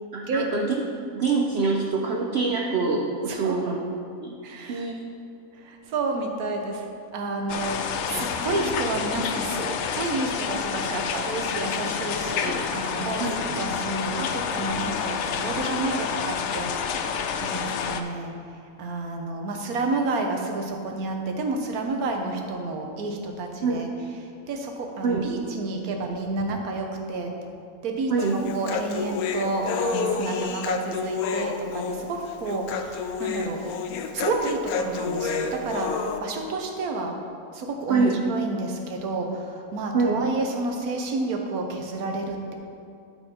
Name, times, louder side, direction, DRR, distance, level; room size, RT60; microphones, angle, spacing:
voice 1, 0.1-0.8 1.1-3.8 4.2-4.4 4.7-4.9 13.2-13.4 23.6-23.8 25.0-25.2 28.1-28.4 37.9-38.2 39.9-40.3, right 4 dB, 55° right, 0 dB, 0.8 m, -24 dB
voice 2, 3.3-3.8 4.4-4.9 5.5-6.9 7.1-13.3 13.6-18.4 18.8-23.9 24.5-27.3 27.8-33.6 34.1-37.2 37.5-42.5, right 3 dB, 85° right, 3 dB, 1.4 m, -30 dB
sound 1, 7.5-18.0, left 7 dB, 65° left, 0.7 m, -29 dB
Human voice, 28.2-36.2, left 5 dB, 80° left, 1.1 m, -29 dB
12.0 x 4.5 x 4.3 m, 2.5 s
omnidirectional pair, 1.5 m